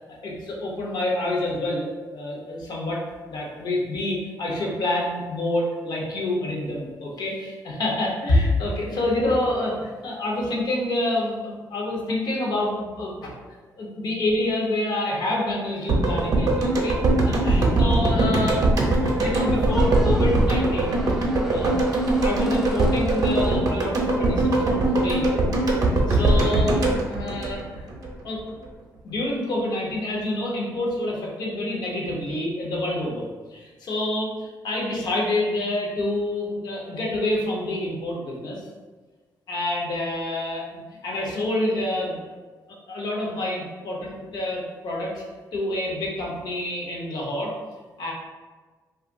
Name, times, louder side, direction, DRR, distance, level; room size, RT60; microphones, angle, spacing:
voice 1, 0.1-3.0 3.3-13.3 13.8-17.0 17.2-21.0 21.5-21.8 22.2-25.4 26.1-27.9 28.2-28.4 29.0-38.6 39.5-42.2 42.9-45.2 45.5-47.5 48.0-48.1, left 1 dB, 70° left, -3 dB, 0.7 m, -27 dB
sound 1, 15.9-28.1 28.4-28.5, right 2 dB, 55° right, 0.5 m, -21 dB
Squeak, 18.8-24.3, right 1 dB, 5° right, 0.3 m, -38 dB
2.8 x 2.4 x 2.5 m, 1.3 s
cardioid pair, 115°, 7 cm